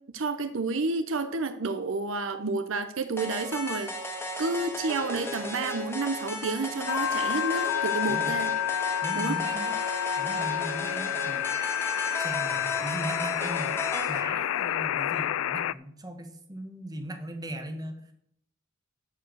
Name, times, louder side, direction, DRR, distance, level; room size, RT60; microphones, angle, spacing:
voice 1, 0.1-8.5 9.2-9.4, right 3 dB, 70° right, 0.7 m, -30 dB
sound 1, 3.2-14.2, left 1 dB, 10° left, 1.8 m, -35 dB
sound 2, 6.9-15.7, left 11 dB, 75° left, 0.3 m, -29 dB
voice 2, 8.1-8.4 9.0-9.8 10.2-11.5 12.2-18.1, right 1 dB, 20° right, 1.4 m, -38 dB
12.0 x 4.7 x 7.8 m
head